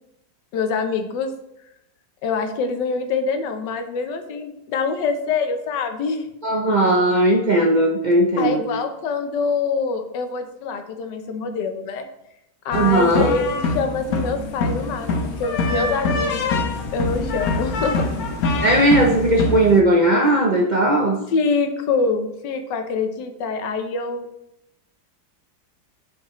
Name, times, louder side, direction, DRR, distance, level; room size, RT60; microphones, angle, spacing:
voice 1, 0.5-1.3 2.2-6.3 8.4-12.0 12.6-16.6 16.9-18.1 21.3-24.3, left 4 dB, 85° left, 6 dB, 1.4 m, -25 dB
voice 2, 6.4-8.6 12.7-13.3 18.6-21.2, right 1 dB, 70° right, -1 dB, 0.4 m, -17 dB
sound 1, 12.7-19.8, left 3 dB, 65° left, 1.2 m, -24 dB
11.0 x 4.8 x 3.0 m, 0.85 s
omnidirectional pair, 1.9 m